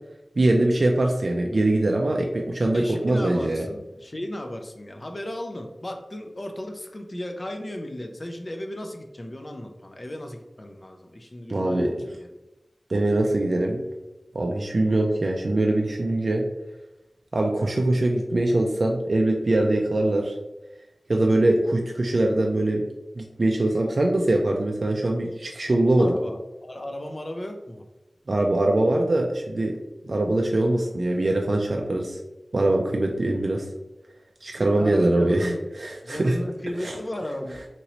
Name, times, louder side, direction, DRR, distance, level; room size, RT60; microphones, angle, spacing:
voice 1, 0.4-3.7 11.5-12.0 12.9-13.8 14.3-16.4 17.3-20.3 21.1-22.9 23.2-26.1 28.3-29.8 30.1-32.2 32.5-33.6 34.4-36.4 36.8-37.0, right 1 dB, 60° right, 0 dB, 0.3 m, -22 dB
voice 2, 2.7-12.3 26.0-27.9 34.5-35.6 36.0-37.6, left 1 dB, 40° left, 3 dB, 0.4 m, -35 dB
2.9 x 2.7 x 2.9 m, 1.0 s
wide cardioid pair, 70°, 0 cm